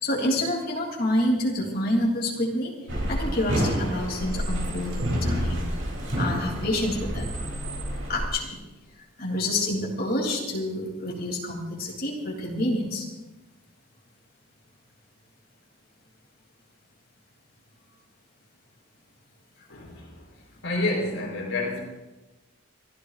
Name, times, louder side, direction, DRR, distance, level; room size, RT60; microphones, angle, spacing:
voice 1, 0.0-2.7 3.1-5.7 6.2-7.3 8.1-8.6 9.2-13.0, left 1 dB, 45° left, -1 dB, 3.2 m, -28 dB
sound 1, 2.9-8.3, equal, 65° right, 3.2 m, -28 dB
voice 2, 19.7-20.3 20.6-21.9, left 2 dB, 70° left, -1 dB, 4.2 m, -29 dB
29.5 x 12.5 x 2.5 m, 1.1 s
head